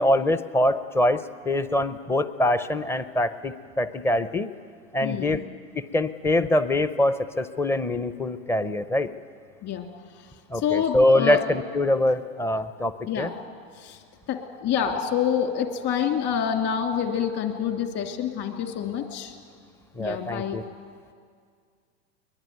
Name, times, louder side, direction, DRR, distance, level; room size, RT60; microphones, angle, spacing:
voice 1, 0.0-4.5 4.9-5.4 5.7-9.1 10.5-13.3 20.0-20.6, left 1 dB, 5° left, 13 dB, 0.5 m, -24 dB
voice 2, 5.0-5.4 9.6-9.9 10.6-11.4 13.1-13.3 13.8-14.0 14.3-19.3 20.0-20.6, left 8 dB, 40° left, 4 dB, 2.8 m, -27 dB
22.5 x 21.5 x 9.3 m, 2.1 s
hypercardioid pair, 125°, 40 cm